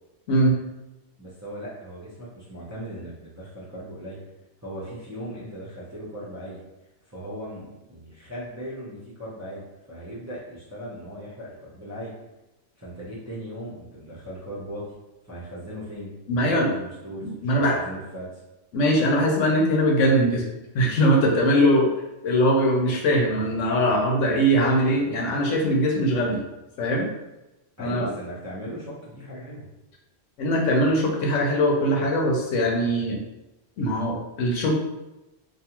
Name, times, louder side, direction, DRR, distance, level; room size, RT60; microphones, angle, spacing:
voice 1, 1.2-4.2 4.6-6.6 7.1-12.2 12.8-14.9 15.2-18.4 27.8-29.7, equal, 20° right, -8 dB, 0.5 m, -38 dB
voice 2, 16.3-16.7 17.2-17.8 18.7-20.4 20.7-21.9 22.2-26.4 26.8-27.1 27.8-28.1 30.4-33.2 33.8-34.7, equal, 80° left, -1 dB, 1.0 m, -21 dB
2.6 x 2.3 x 2.9 m, 0.99 s
omnidirectional pair, 1.3 m